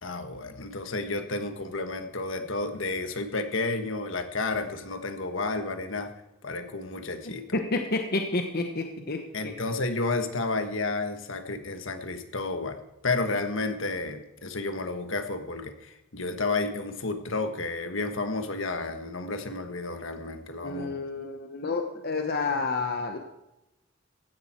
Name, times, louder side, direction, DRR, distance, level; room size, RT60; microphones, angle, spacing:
voice 1, 0.0-6.1 6.4-7.6 9.3-21.0, left 3 dB, 70° left, 7 dB, 1.5 m, -31 dB
voice 2, 7.3-9.5 20.6-23.2, left 3 dB, 50° left, 4 dB, 1.1 m, -30 dB
15.5 x 11.0 x 4.5 m, 0.95 s
head